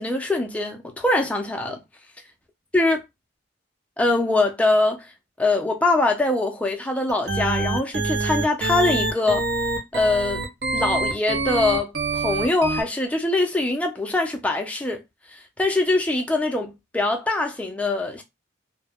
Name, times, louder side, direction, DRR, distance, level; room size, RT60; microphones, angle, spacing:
voice 1, 0.0-1.8 2.7-3.0 4.0-5.1 5.4-9.5 9.9-10.4 10.7-15.0 15.3-18.2, left 2 dB, 5° left, 0.4 m, -23 dB
sound 1, 7.1-12.8, right 2 dB, 65° right, 0.7 m, -25 dB
2.1 x 2.0 x 3.4 m
head